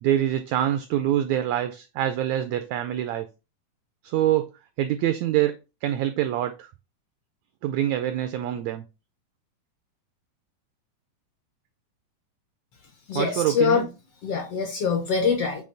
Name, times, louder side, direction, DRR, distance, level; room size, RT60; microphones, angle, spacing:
voice 1, 0.0-3.3 4.0-4.5 4.8-5.6 5.8-6.7 7.6-8.8 13.1-13.9, right 12 dB, 85° right, 1.6 m, -25 dB
voice 2, 13.1-13.9 14.2-15.6, left 5 dB, 65° left, 1.6 m, -24 dB
8.3 x 3.0 x 3.9 m
omnidirectional pair, 3.7 m